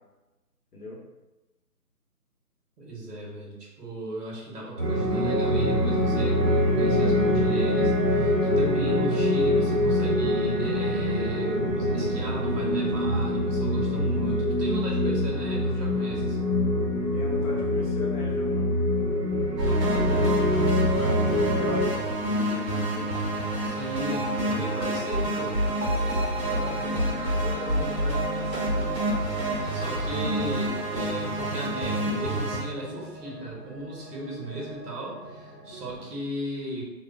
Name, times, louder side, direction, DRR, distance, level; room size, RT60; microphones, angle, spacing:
voice 1, 2.8-16.5 23.6-25.6 29.7-36.8, right 1 dB, 70° right, -3 dB, 1.1 m, -36 dB
sound 1, 4.8-21.8, left 1 dB, 45° right, 0.8 m, -24 dB
voice 2, 17.1-18.7 19.8-23.1 26.5-28.8, left 2 dB, 70° left, -4 dB, 1.0 m, -40 dB
sound 2, 19.6-32.6, right 1 dB, 90° right, 0.8 m, -28 dB
sound 3, 23.0-36.0, left 1 dB, 20° left, 0.8 m, -43 dB
2.3 x 2.3 x 2.3 m, 1.0 s
figure-of-eight pair, 165°, 48 cm